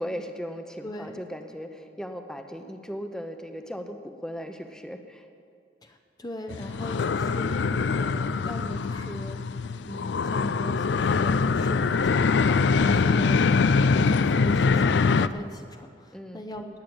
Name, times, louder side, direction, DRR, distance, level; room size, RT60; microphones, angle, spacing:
voice 1, 0.0-5.3 16.1-16.4, equal, 5° left, 6 dB, 0.9 m, -37 dB
voice 2, 0.8-1.2 5.8-7.6 7.9-9.4 9.8-12.5 12.8-13.5 13.9-16.8, equal, 20° left, 4 dB, 0.8 m, -39 dB
sound 1, 6.5-15.3, left 4 dB, 80° left, 0.4 m, -23 dB
19.5 x 8.7 x 7.9 m, 2.3 s
head